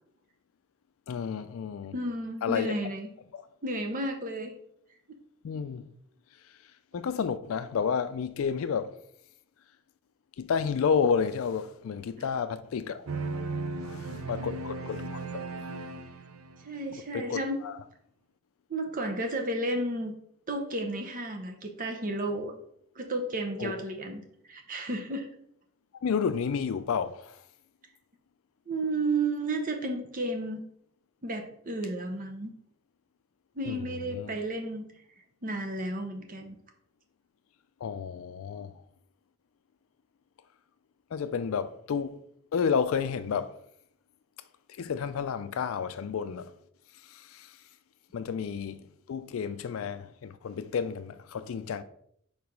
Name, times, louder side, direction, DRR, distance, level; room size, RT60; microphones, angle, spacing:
voice 1, 1.1-1.9 2.4-2.7 3.3-3.4 5.4-5.8 6.9-8.9 10.4-13.1 13.8-15.4 17.1-17.8 23.6-23.7 26.0-27.3 33.6-34.3 37.8-38.7 41.1-42.2 42.5-43.5 44.8-46.5 47.1-47.5 48.1-48.8 49.1-51.8, left 6 dB, 70° left, 0.4 m, -31 dB
voice 2, 1.9-3.1 3.6-4.5 13.7-14.5 16.6-17.6 18.7-20.1 20.5-22.5 23.0-24.2 24.5-25.3 28.7-30.6 31.2-32.5 33.6-34.8 35.4-36.6, right 2 dB, 40° right, 0.8 m, -32 dB
sound 1, 13.1-16.8, right 3 dB, 85° right, 0.6 m, -36 dB
4.8 x 4.0 x 5.2 m
head